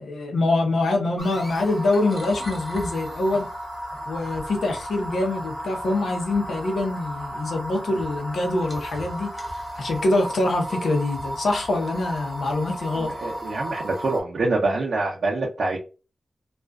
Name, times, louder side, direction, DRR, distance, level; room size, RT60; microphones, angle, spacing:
voice 1, 0.0-3.5 4.1-13.1, left 2 dB, 85° left, 0.7 m, -25 dB
sound 1, 1.2-14.2, right 1 dB, ahead, 0.6 m, -34 dB
voice 2, 13.0-15.8, right 2 dB, 65° right, 0.6 m, -25 dB
2.5 x 2.3 x 2.2 m
wide cardioid pair, 170°, 0 cm